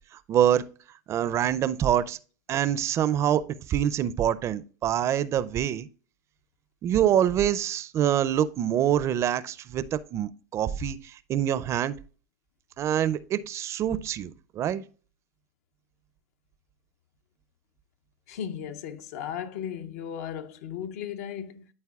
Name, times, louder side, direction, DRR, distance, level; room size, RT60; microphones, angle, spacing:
voice 1, 0.3-0.6 1.1-2.2 2.5-5.9 6.8-11.9 12.8-14.8, right 10 dB, 35° right, 0.4 m, -25 dB
voice 2, 18.3-21.7, left 9 dB, 70° left, 0.6 m, -36 dB
12.0 x 4.3 x 2.3 m
supercardioid pair, 115°, 9 cm